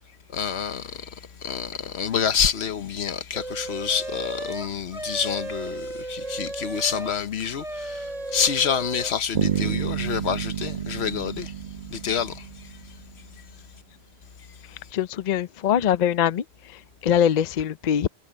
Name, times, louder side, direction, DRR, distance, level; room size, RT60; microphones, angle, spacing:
voice 1, 0.3-11.5 11.9-12.5, left 7 dB, 80° left, 1.2 m, -28 dB
sound 1, 3.3-7.2 7.5-9.1, right 2 dB, 35° right, 5.8 m, -34 dB
Bass guitar, 9.3-13.1, right 9 dB, 55° right, 1.1 m, -29 dB
voice 2, 14.9-16.4 16.7-18.1, left 9 dB, 50° left, 0.6 m, -23 dB
omnidirectional pair, 1.1 m